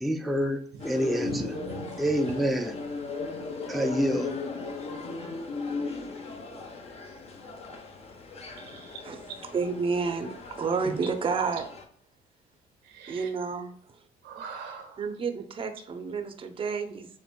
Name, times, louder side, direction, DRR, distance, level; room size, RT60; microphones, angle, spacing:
voice 1, 0.0-0.6 0.8-1.5 2.0-2.7 3.7-4.3, equal, ahead, 4 dB, 0.4 m, -27 dB
sound 1, 0.8-11.8, left 4 dB, 40° left, 0.8 m, -37 dB
voice 2, 1.2-1.9 8.7-9.0 12.9-13.3 14.2-15.0, right 4 dB, 90° right, 4 dB, 1.1 m, -40 dB
voice 3, 9.0-11.6 13.1-13.7 15.0-17.1, right 5 dB, 30° right, 6 dB, 0.7 m, -30 dB
7.2 x 2.5 x 2.2 m, 0.63 s
cardioid pair, 110°, 17 cm